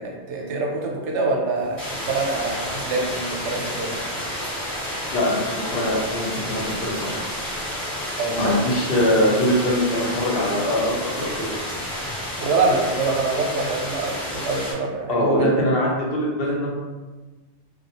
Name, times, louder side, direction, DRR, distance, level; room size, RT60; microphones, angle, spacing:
voice 1, 0.0-3.9 8.2-8.6 12.4-15.7, right 3 dB, 85° right, 0 dB, 0.9 m, -25 dB
sound 1, 1.8-14.7, equal, 10° left, 1.0 m, -30 dB
voice 2, 5.1-7.1 8.3-11.3 15.1-16.7, left 1 dB, 65° left, -3 dB, 0.8 m, -22 dB
2.3 x 2.3 x 2.7 m, 1.2 s
omnidirectional pair, 1.1 m